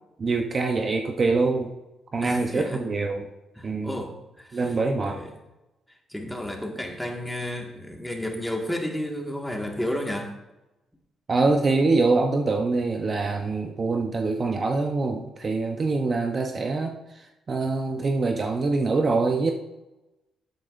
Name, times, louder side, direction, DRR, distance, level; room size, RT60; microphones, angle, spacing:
voice 1, 0.2-1.7 2.1-3.3 3.6-4.0 4.5-5.2 11.3-19.5, right 3 dB, 40° right, 4 dB, 0.8 m, -24 dB
voice 2, 2.2-2.8 3.6-4.7 5.0-5.3 6.1-10.3, left 1 dB, 5° left, 1 dB, 1.8 m, -32 dB
11.5 x 8.7 x 2.6 m, 0.99 s
cardioid pair, 90°, 0 cm